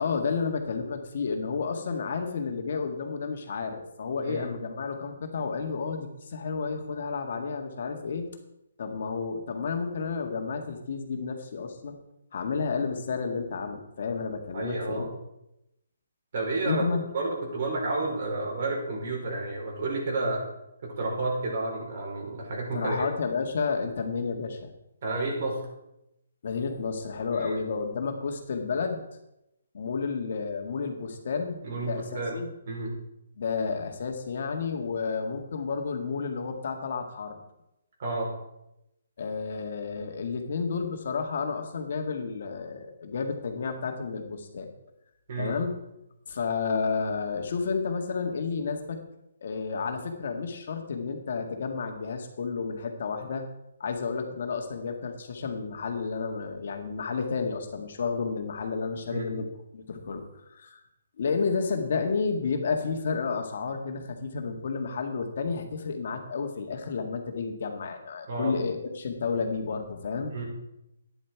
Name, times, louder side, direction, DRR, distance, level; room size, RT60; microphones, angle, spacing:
voice 1, 0.0-8.3 8.8-12.0 12.3-15.1 16.6-17.0 22.7-24.7 26.4-29.0 29.7-32.5 33.4-37.4 39.2-44.7 45.4-45.8 46.3-49.0 49.4-53.5 53.8-59.5 59.7-60.8 61.2-70.3, left 5 dB, 55° left, 5 dB, 2.0 m, -31 dB
voice 2, 14.5-15.1 16.3-16.8 17.1-20.4 20.8-23.1 25.0-25.6 27.3-27.6 31.6-32.3 32.7-32.9 38.0-38.3 45.3-45.5 59.1-59.4 68.3-68.5 70.3-70.4, right 2 dB, 50° right, -1 dB, 4.9 m, -31 dB
12.0 x 10.0 x 4.7 m, 0.86 s
hypercardioid pair, 165°, 0 cm